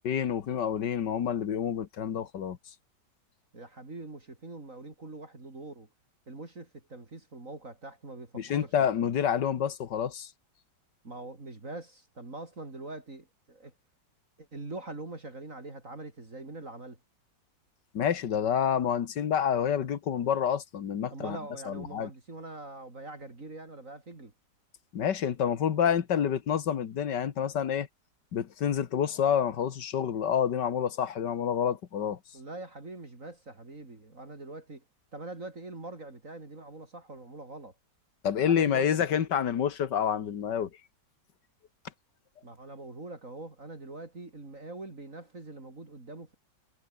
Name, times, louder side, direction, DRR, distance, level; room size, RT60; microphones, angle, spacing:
voice 1, 0.0-2.6 8.3-10.3 17.9-21.4 21.7-22.1 24.9-27.9 28.3-32.2 38.2-40.7, left 8 dB, 75° left, 2.0 m, -28 dB
voice 2, 3.5-5.9 6.3-8.7 11.0-13.7 14.4-17.0 21.1-24.3 32.3-34.8 35.1-37.7 38.5-38.9 42.4-46.3, right 2 dB, 45° right, 4.3 m, -43 dB
omnidirectional pair, 1.9 m